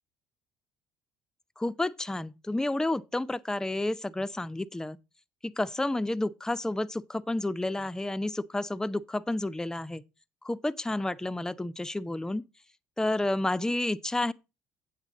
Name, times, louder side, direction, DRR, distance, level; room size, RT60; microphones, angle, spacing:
voice 1, 1.6-5.0 5.4-10.0 10.4-12.4 13.0-14.3, left 2 dB, 5° left, 0.5 m, -30 dB
8.1 x 8.0 x 3.9 m
figure-of-eight pair, 55°, 8 cm